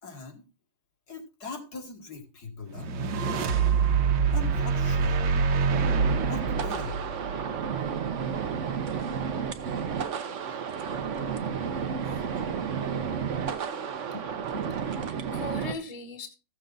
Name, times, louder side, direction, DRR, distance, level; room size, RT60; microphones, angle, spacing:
voice 1, 0.0-0.4 1.1-2.9 4.3-5.3 6.2-7.0, left 4 dB, 55° left, 3 dB, 2.3 m, -40 dB
sound 1, 2.7-8.1, right 5 dB, 75° right, 1.6 m, -26 dB
sound 2, 5.7-15.7, right 7 dB, 50° right, 1.0 m, -32 dB
voice 2, 12.2-12.6 13.5-15.0 15.3-16.3, left 2 dB, 20° left, 7 dB, 1.4 m, -41 dB
14.5 x 7.6 x 3.9 m, 0.31 s
omnidirectional pair, 2.1 m